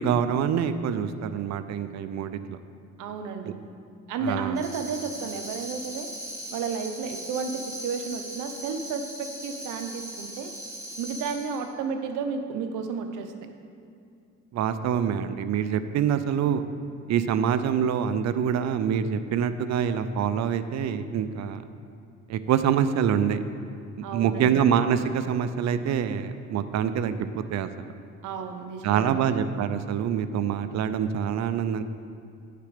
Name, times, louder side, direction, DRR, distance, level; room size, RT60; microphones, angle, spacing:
voice 1, 0.0-2.6 3.4-3.5 4.2-4.6 14.5-16.6 17.1-21.6 22.3-23.4 24.1-27.7 28.8-31.8, right 8 dB, 65° right, 11 dB, 0.5 m, -25 dB
voice 2, 3.0-3.5 4.1-6.1 6.5-10.5 11.0-13.3 24.0-24.6 28.2-29.4, right 5 dB, 90° right, 6 dB, 0.8 m, -32 dB
Tambourine, 4.6-11.6, right 1 dB, 10° right, 1.9 m, -39 dB
9.6 x 6.6 x 5.0 m, 2.6 s
cardioid pair, 90°, 30 cm